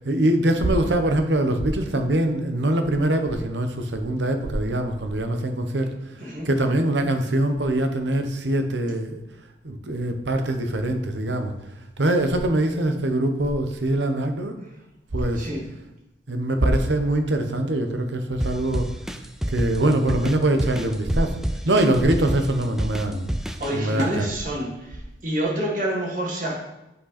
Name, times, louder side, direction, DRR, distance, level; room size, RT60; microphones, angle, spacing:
voice 1, 0.0-9.2 9.6-11.5 12.0-14.6 15.1-15.5 16.3-18.9 19.5-21.4 21.6-23.3 23.7-24.3, right 1 dB, 75° right, 6 dB, 0.9 m, -23 dB
sound 1, 18.4-23.7, equal, ahead, 0.3 m, -29 dB
voice 2, 23.6-26.5, right 1 dB, 45° right, -2 dB, 1.9 m, -28 dB
8.3 x 5.3 x 4.2 m, 0.95 s
head